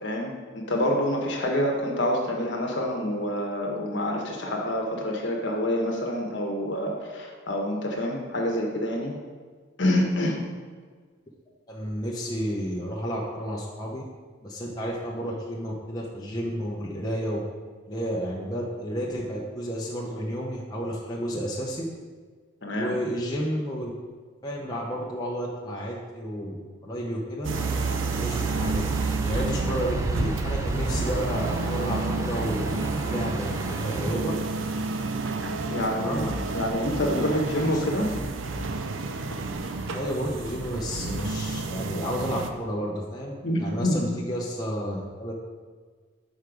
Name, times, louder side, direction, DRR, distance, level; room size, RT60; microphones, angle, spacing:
voice 1, 0.0-9.1 9.8-10.4 22.6-22.9 35.7-38.1 43.4-44.1, left 1 dB, 60° left, 0 dB, 1.2 m, -27 dB
voice 2, 11.7-14.0 14.4-17.4 17.9-21.8 22.8-23.9 24.4-26.6 26.8-27.5 28.2-28.9 29.2-33.5 33.8-34.3 36.0-36.2 37.7-37.8 39.9-45.3, equal, 20° left, -4 dB, 0.8 m, -31 dB
sound 1, 27.4-42.5, right 4 dB, 70° right, 0.5 m, -30 dB
sound 2, 27.5-34.1, right 1 dB, 15° right, 0.4 m, -32 dB
6.5 x 4.7 x 5.1 m, 1.5 s
head